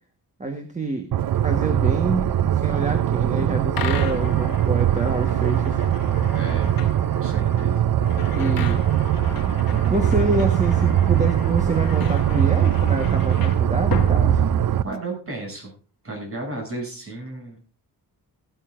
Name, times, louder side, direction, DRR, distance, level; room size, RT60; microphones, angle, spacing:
voice 1, 0.4-1.1 1.4-5.8 8.3-8.8 9.9-14.4, right 2 dB, 20° right, 4 dB, 1.4 m, -27 dB
sound 1, 1.1-14.8, right 10 dB, 60° right, 0.6 m, -21 dB
sound 2, 3.7-15.0, left 8 dB, 60° left, 1.3 m, -37 dB
voice 2, 6.3-6.7 7.2-7.9 14.8-15.7 16.0-17.6, right 2 dB, 35° right, 0 dB, 7.9 m, -33 dB
18.0 x 13.0 x 2.6 m, 0.36 s
wide cardioid pair, 175°, 39 cm